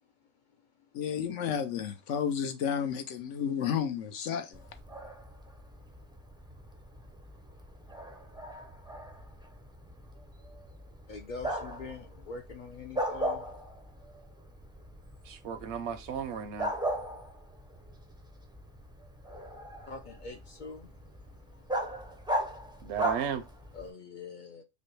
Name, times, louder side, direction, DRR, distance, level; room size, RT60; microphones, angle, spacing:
voice 1, 0.9-4.6, left 8 dB, 85° left, 1.0 m, -32 dB
Bark, 4.5-23.9, right 1 dB, 5° right, 0.3 m, -39 dB
voice 2, 11.1-13.5 19.9-20.9 23.7-24.6, left 4 dB, 60° left, 0.5 m, -44 dB
voice 3, 15.2-16.7 22.8-23.4, right 7 dB, 75° right, 0.9 m, -34 dB
5.3 x 2.1 x 3.1 m
omnidirectional pair, 1.2 m